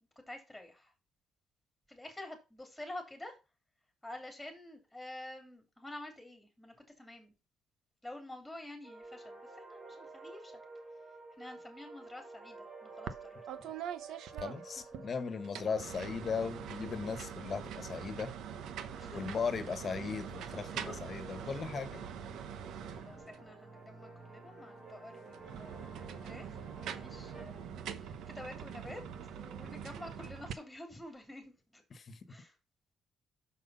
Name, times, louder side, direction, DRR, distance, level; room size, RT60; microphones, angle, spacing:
voice 1, 0.3-0.9 1.9-3.4 4.0-7.3 8.0-10.5 11.4-13.4 18.9-19.4 20.0-20.2 20.7-21.0 21.3-21.6 23.0-31.8 32.3-32.5, left 1 dB, ahead, 2.9 m, -49 dB
sound 1, 8.8-27.4, right 3 dB, 50° right, 3.2 m, -52 dB
sound 2, 13.1-13.2 13.5-15.0 15.4-23.5 25.2-30.5, right 8 dB, 80° right, 0.8 m, -44 dB
voice 2, 14.4-18.3 19.1-22.0 31.9-32.2, left 5 dB, 45° left, 1.3 m, -37 dB
6.4 x 5.6 x 5.6 m
cardioid pair, 90°, 0 cm